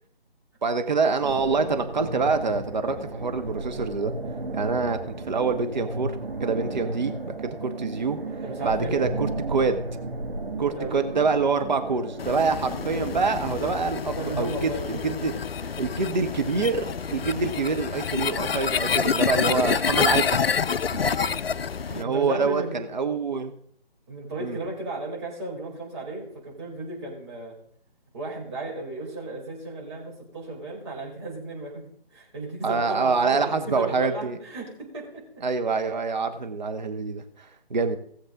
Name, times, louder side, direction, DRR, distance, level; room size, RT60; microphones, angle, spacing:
voice 1, 0.6-4.1 4.5-5.0 5.3-8.2 8.6-9.8 10.6-15.3 15.8-20.5 21.9-23.5 24.4-24.6 32.6-34.4 35.4-38.0, right 4 dB, 50° right, 7 dB, 1.1 m, -26 dB
sound 1, 1.2-14.6, right 2 dB, 70° right, 1.5 m, -34 dB
voice 2, 8.4-9.1 10.8-11.1 13.9-15.0 15.5-15.9 20.9-21.3 21.7-22.8 24.1-27.6 28.1-31.8 32.1-35.2, right 2 dB, 30° right, -4 dB, 4.2 m, -35 dB
sound 2, 12.2-22.0, left 6 dB, 75° left, 0.5 m, -27 dB
17.5 x 7.3 x 3.8 m, 0.64 s
figure-of-eight pair, 155°, 30 cm